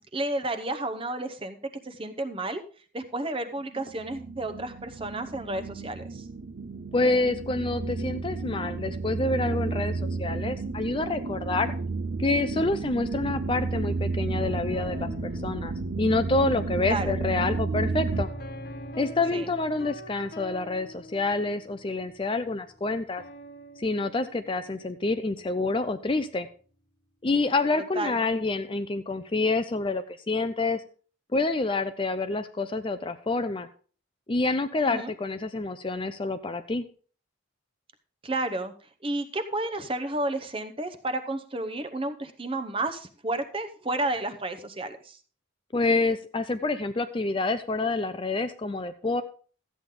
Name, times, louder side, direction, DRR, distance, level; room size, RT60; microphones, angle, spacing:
voice 1, 0.1-1.6 1.8-2.6 2.9-6.2 16.9-17.2 19.3-19.5 27.7-28.2 34.8-35.1 38.2-38.7 39.0-45.2, right 2 dB, 25° right, 10 dB, 0.8 m, -31 dB
sound 1, 3.6-18.2, right 3 dB, 60° right, 0.6 m, -32 dB
voice 2, 6.9-11.7 12.2-15.1 15.4-15.7 16.0-18.3 19.0-23.2 23.8-26.5 27.2-30.8 31.3-33.7 34.3-36.8 45.7-49.2, left 3 dB, 25° left, 10 dB, 0.4 m, -27 dB
sound 2, 14.4-25.2, equal, 45° left, 1.3 m, -43 dB
13.0 x 8.4 x 3.7 m, 0.41 s
head